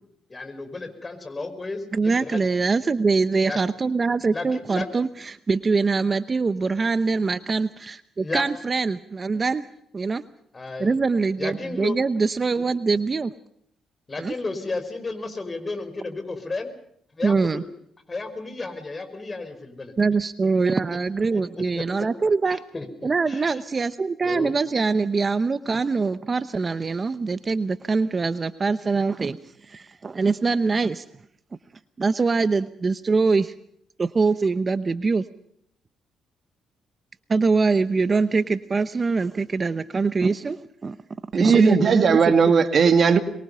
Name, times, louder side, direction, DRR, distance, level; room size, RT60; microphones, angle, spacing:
voice 1, 0.3-2.4 3.4-3.6 4.3-4.9 8.2-8.4 10.5-11.0 11.4-11.9 12.6-12.7 14.1-16.7 17.2-17.7 18.1-19.9 20.6-20.7 21.3-22.1 22.5-23.4 24.2-24.5, left 3 dB, 25° left, 5.0 m, -33 dB
voice 2, 1.9-9.7 9.9-10.2 10.8-13.3 14.2-14.3 17.2-17.6 20.0-22.6 23.0-31.0 32.0-33.5 34.0-35.3 37.3-41.0 41.3-42.2, right 4 dB, 30° right, 0.8 m, -23 dB
voice 3, 41.4-43.2, right 5 dB, 50° right, 2.1 m, -17 dB
24.0 x 22.5 x 5.6 m
cardioid pair, 90°, 0 cm